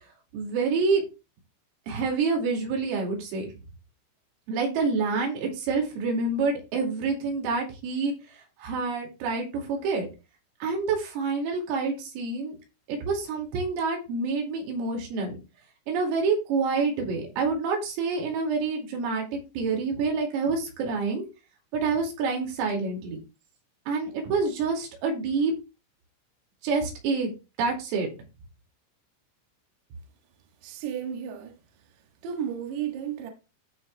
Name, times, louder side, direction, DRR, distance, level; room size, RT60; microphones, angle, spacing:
voice 1, 0.3-1.0 1.9-3.5 4.5-10.1 10.6-12.6 12.9-15.4 15.9-21.2 21.7-23.2 23.9-25.5 26.6-27.3 27.6-28.1, right 4 dB, 90° right, 5.2 m, -27 dB
voice 2, 30.6-31.5 32.2-33.3, right 8 dB, 65° right, 3.3 m, -33 dB
15.5 x 5.3 x 2.4 m
omnidirectional pair, 5.8 m